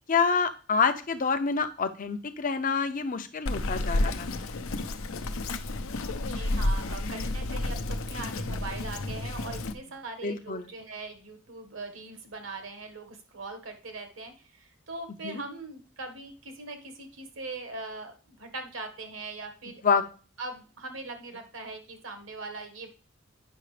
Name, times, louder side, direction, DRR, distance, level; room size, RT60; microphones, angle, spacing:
voice 1, 0.1-4.5 10.2-10.7 15.2-15.4 19.8-20.0, left 5 dB, 40° left, 9 dB, 0.6 m, -27 dB
Bird vocalization bird call bird song, 3.5-9.7, left 2 dB, 80° left, 0.7 m, -31 dB
voice 2, 6.2-20.0 20.4-22.9, right 3 dB, 65° right, 6 dB, 1.5 m, -41 dB
9.0 x 5.9 x 3.3 m, 0.38 s
head